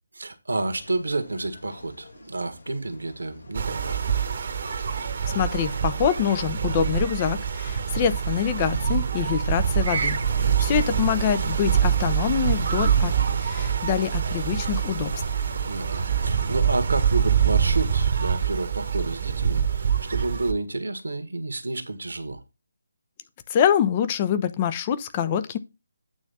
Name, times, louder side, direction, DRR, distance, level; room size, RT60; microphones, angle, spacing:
voice 1, 0.1-4.0 10.3-10.7 15.7-22.4, right 2 dB, 70° right, 1.6 m, -30 dB
sound 1, 0.8-16.8, left 2 dB, 60° left, 2.1 m, -47 dB
sound 2, 3.5-20.5, right 7 dB, 50° right, 1.3 m, -25 dB
voice 2, 5.3-13.1 13.4-15.1 23.5-25.6, left 9 dB, 25° left, 0.8 m, -25 dB
9.0 x 3.5 x 6.9 m
figure-of-eight pair, 150°, 0 cm